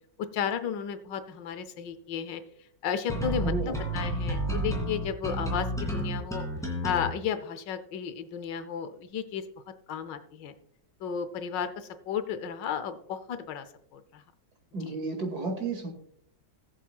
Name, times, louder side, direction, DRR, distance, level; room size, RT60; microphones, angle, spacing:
voice 1, 0.3-2.4 2.8-6.4 6.8-9.4 9.9-10.5 11.0-13.7 13.9-14.2 14.8-14.9, left 7 dB, 80° left, 11 dB, 1.5 m, -33 dB
sound 1, 3.1-7.1, right 1 dB, ahead, 2.4 m, -31 dB
voice 2, 3.4-3.8 14.7-15.9, right 3 dB, 60° right, 2 dB, 2.7 m, -32 dB
19.5 x 7.4 x 2.3 m, 0.70 s
omnidirectional pair, 1.9 m